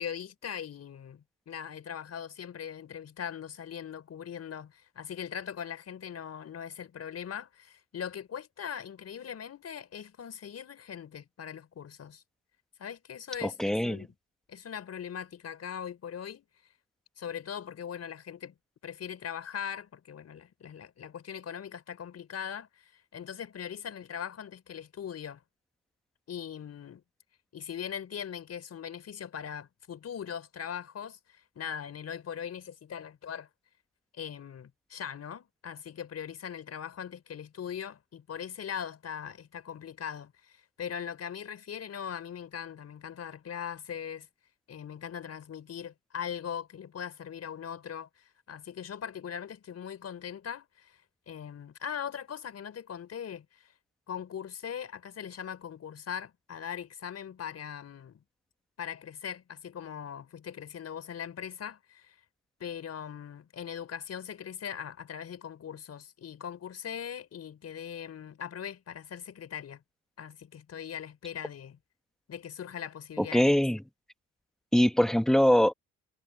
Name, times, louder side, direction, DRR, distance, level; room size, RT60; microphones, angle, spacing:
voice 1, 0.0-12.2 12.8-14.1 14.5-16.5 17.2-18.5 18.8-25.4 26.3-27.0 27.5-33.5 34.1-44.3 44.7-51.0 51.3-53.7 54.1-58.2 58.8-62.1 62.6-69.8 70.2-71.8 72.3-73.6, left 8 dB, 55° left, 4.6 m, -40 dB
voice 2, 13.4-14.0 73.2-73.8 74.7-75.7, equal, ahead, 1.1 m, -23 dB
cardioid pair, 90°, 30 cm